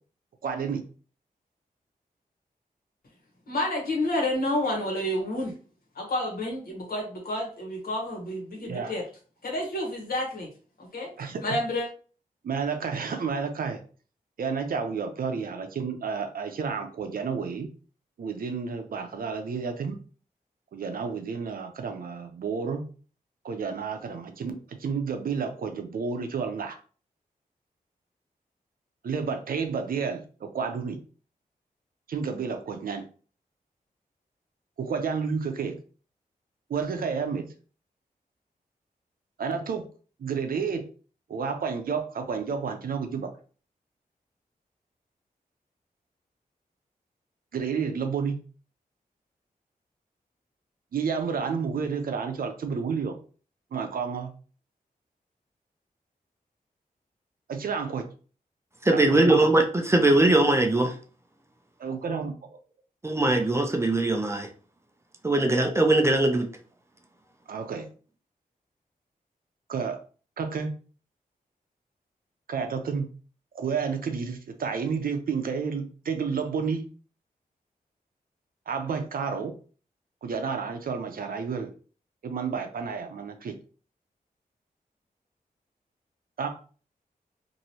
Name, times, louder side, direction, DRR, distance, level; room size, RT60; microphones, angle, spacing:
voice 1, 0.4-0.8 8.5-9.0 11.2-11.4 12.4-13.8 14.4-17.7 18.2-20.0 20.7-22.8 23.4-26.8 29.0-31.0 32.1-33.0 34.8-35.8 36.7-37.5 39.4-39.8 40.2-40.9 41.3-43.3 47.5-48.4 50.9-53.2 53.7-54.3 57.5-58.0 58.9-59.4 61.8-62.3 67.5-67.9 69.7-70.0 70.4-70.7 72.5-73.1 73.5-76.9 78.7-79.5 80.2-81.7 82.2-83.5 86.4-86.5, right 5 dB, 70° right, 0.5 m, -30 dB
voice 2, 3.5-5.5 5.9-9.0 9.4-10.5 10.8-11.1 11.4-11.8, left 1 dB, 75° left, 1.2 m, -29 dB
voice 3, 58.8-60.9 63.0-64.5 65.2-66.5, right 2 dB, 20° right, 0.4 m, -21 dB
3.0 x 2.6 x 2.8 m
wide cardioid pair, 150°, 15 cm